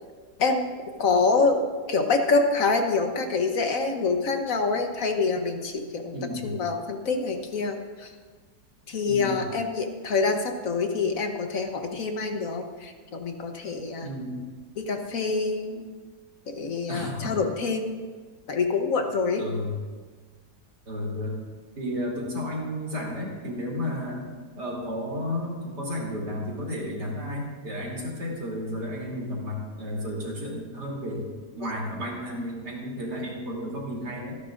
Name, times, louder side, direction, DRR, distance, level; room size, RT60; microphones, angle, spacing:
voice 1, 0.4-0.7 1.0-1.6 1.9-6.2 6.4-8.1 8.9-14.1 14.8-15.8 16.5-17.9 18.5-19.4, left 4 dB, 60° left, 5 dB, 1.3 m, -26 dB
voice 2, 6.1-6.5 9.1-9.4 14.0-14.4 16.9-17.4 19.4-19.8 20.9-21.4 21.8-24.2 24.6-31.3 31.6-34.4, left 1 dB, 80° right, -3 dB, 3.6 m, -32 dB
25.5 x 11.0 x 2.5 m, 1.4 s
omnidirectional pair, 1.8 m